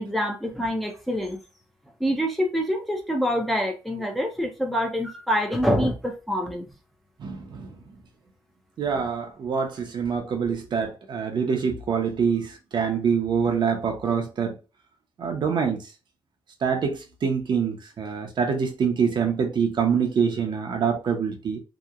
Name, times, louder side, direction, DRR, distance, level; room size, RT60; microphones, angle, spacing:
voice 1, 0.0-1.4 2.0-6.7, equal, ahead, 0.5 m, -26 dB
voice 2, 7.2-7.7 8.8-14.5 15.2-15.8 16.6-21.6, right 6 dB, 60° right, 0.6 m, -25 dB
2.8 x 2.1 x 2.3 m
cardioid pair, 105°, 9 cm